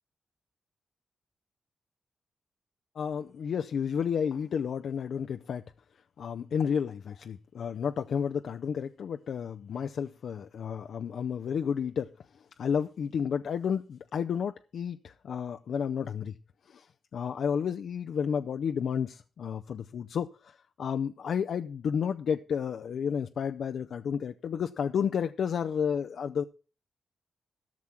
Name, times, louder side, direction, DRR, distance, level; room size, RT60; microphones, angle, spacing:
voice 1, 3.0-5.6 6.2-12.1 12.6-16.4 16.7-16.9 17.1-26.4, left 7 dB, 75° left, 0.5 m, -31 dB
13.5 x 6.2 x 5.8 m
supercardioid pair, 50°, 0 cm